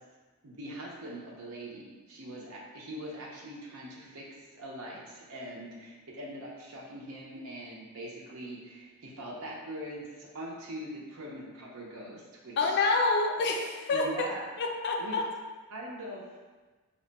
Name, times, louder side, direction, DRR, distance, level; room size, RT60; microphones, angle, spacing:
voice 1, 0.4-4.3 4.5-12.8 13.9-14.5 15.0-15.1 15.7-16.2, right 1 dB, 70° right, -3 dB, 0.6 m, -42 dB
voice 2, 12.6-14.3 14.6-15.3, left 3 dB, 50° left, 2 dB, 0.4 m, -27 dB
2.9 x 2.1 x 3.9 m, 1.3 s
head